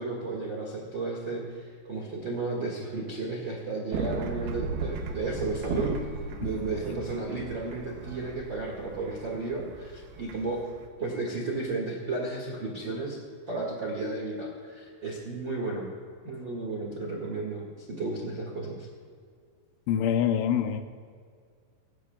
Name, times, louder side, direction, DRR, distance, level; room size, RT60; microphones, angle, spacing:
voice 1, 0.0-6.0 6.4-10.6 11.0-13.2 13.5-15.9 16.2-18.9, right 3 dB, 55° right, -3 dB, 1.2 m, -33 dB
sound 1, 3.9-10.9, right 4 dB, 70° right, 2.5 m, -36 dB
voice 2, 19.9-20.8, left 9 dB, 80° left, 7 dB, 3.1 m, -25 dB
26.0 x 15.0 x 2.4 m, 2.1 s
omnidirectional pair, 5.5 m